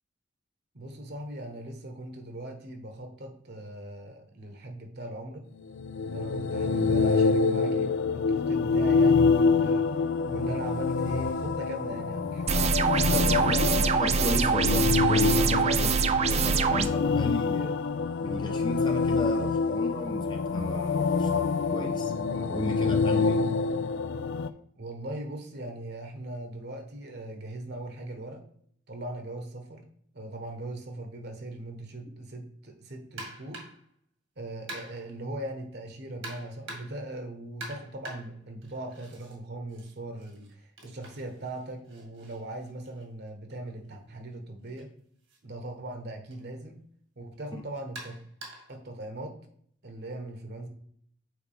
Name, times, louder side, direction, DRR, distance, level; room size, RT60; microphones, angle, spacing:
voice 1, 0.7-5.5 6.1-9.9 10.3-12.5 13.1-13.5 15.6-15.8 24.7-28.4 28.9-29.8 30.1-33.6 34.4-44.9 45.4-46.8 47.2-48.2 48.7-49.4 49.8-50.7, right 1 dB, 55° right, 4 dB, 1.2 m, -39 dB
sound 1, 5.7-24.5, left 4 dB, 65° left, 0.4 m, -26 dB
sound 2, 12.5-16.9, right 5 dB, 30° right, 0.4 m, -24 dB
voice 2, 13.1-15.9 16.2-17.7 18.2-21.4 21.7-23.4 47.5-47.6, left 1 dB, 25° left, 2 dB, 0.8 m, -35 dB
sound 3, 33.2-33.9 34.7-35.2 36.2-37.1 37.6-39.4 39.7-43.6 44.6-44.8 45.3-45.4 46.3-46.4 47.9-48.8, right 1 dB, 70° right, 1.9 m, -45 dB
8.0 x 4.6 x 3.5 m, 0.64 s
head